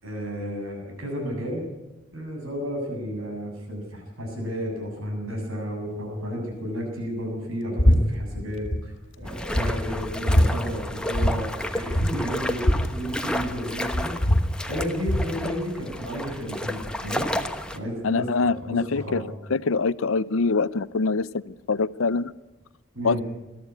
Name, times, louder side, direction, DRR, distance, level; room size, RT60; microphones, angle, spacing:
voice 1, 0.0-1.7 2.1-14.1 14.7-17.3 17.7-18.3 18.6-19.3 22.9-23.2, equal, 90° right, 2 dB, 7.6 m, -32 dB
sound 1, 7.8-8.0 8.3-8.8 9.2-9.3 9.6-10.5 11.1-11.4 11.6-11.7 11.9-13.6 13.9-15.3, equal, 60° left, 1.8 m, -22 dB
sound 2, 9.2-17.8, left 1 dB, 5° left, 1.0 m, -32 dB
voice 2, 18.0-19.2 19.5-22.3 23.0-23.2, left 4 dB, 80° left, 18 dB, 0.6 m, -24 dB
21.5 x 13.5 x 9.7 m, 1.1 s
head